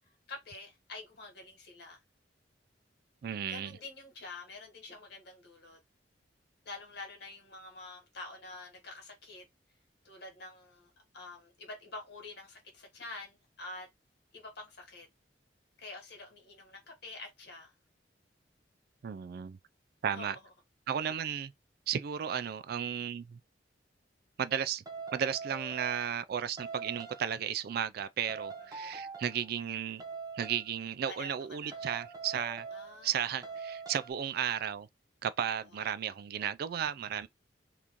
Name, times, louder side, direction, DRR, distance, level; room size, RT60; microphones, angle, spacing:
voice 1, 0.3-2.0 3.5-5.8 6.6-9.4 10.0-13.9 14.3-15.1 15.8-17.7 20.1-20.4 21.0-21.2 28.8-29.0 31.1-31.8 32.7-33.5 35.7-35.8, left 3 dB, 65° left, 1.5 m, -47 dB
voice 2, 3.2-3.8 19.0-19.6 20.0-20.4 20.9-21.5 21.9-23.4 24.4-24.8 25.1-30.0 30.3-32.7 33.0-34.9 35.2-37.3, right 8 dB, 55° right, 0.3 m, -34 dB
sound 1, 24.9-26.3 26.6-27.5 28.3-29.5 30.0-30.7 31.7-33.1 33.4-34.1, right 4 dB, 20° right, 0.6 m, -43 dB
2.9 x 2.6 x 3.6 m
head